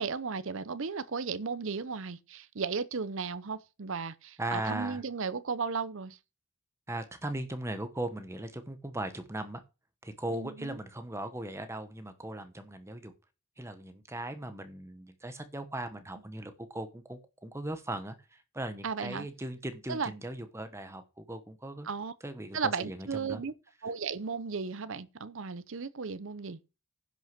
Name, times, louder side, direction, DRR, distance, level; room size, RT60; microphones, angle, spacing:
voice 1, 0.0-6.2 10.3-10.8 18.8-19.3 19.9-20.1 21.8-22.1 22.5-23.5 23.8-26.6, right 5 dB, 60° right, 0.6 m, -35 dB
voice 2, 4.4-5.0 6.9-9.6 10.0-13.1 13.6-21.9 22.2-23.4, right 1 dB, 10° right, 1.1 m, -38 dB
10.5 x 6.4 x 6.0 m
head